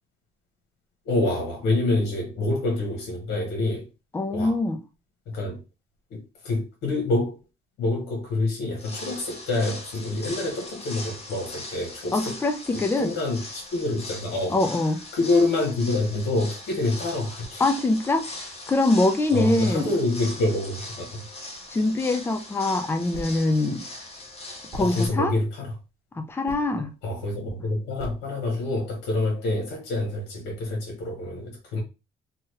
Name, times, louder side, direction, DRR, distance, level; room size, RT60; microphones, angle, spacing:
voice 1, 1.0-3.9 4.3-4.6 5.3-5.6 6.1-7.4 7.8-12.4 12.7-14.6 15.1-17.6 19.3-21.2 24.8-25.7 27.0-31.8, left 2 dB, 85° left, 1.1 m, -27 dB
voice 2, 4.1-4.8 12.1-13.1 14.5-15.0 17.6-18.3 18.7-19.9 21.7-23.8 24.7-25.3 26.2-26.9, left 2 dB, 15° left, 0.5 m, -23 dB
sound 1, 8.7-25.1, left 2 dB, 35° left, 0.8 m, -40 dB
sound 2, 23.1-23.5 24.0-24.1 24.7-25.2 26.5-26.7 28.0-28.3, right 2 dB, 35° right, 0.9 m, -39 dB
2.9 x 2.3 x 3.1 m
cardioid pair, 110°, 17 cm